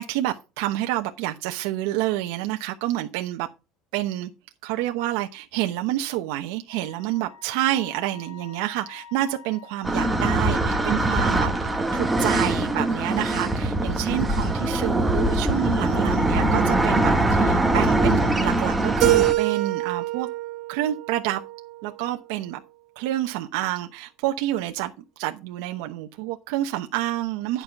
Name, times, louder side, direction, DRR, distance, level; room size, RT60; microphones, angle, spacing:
voice 1, 0.0-3.5 3.9-4.3 4.6-20.3 20.7-21.4 21.8-22.6 23.0-24.9 25.2-27.6, right 14 dB, 80° right, 0.9 m, -28 dB
Wind instrument woodwind instrument, 6.7-10.6, left 5 dB, 85° left, 2.7 m, -47 dB
sound 1, 9.8-19.3, right 1 dB, 5° right, 1.1 m, -22 dB
Keyboard (musical), 19.0-21.9, right 16 dB, 40° right, 1.8 m, -25 dB
11.0 x 5.6 x 4.6 m
cardioid pair, 165°, 0 cm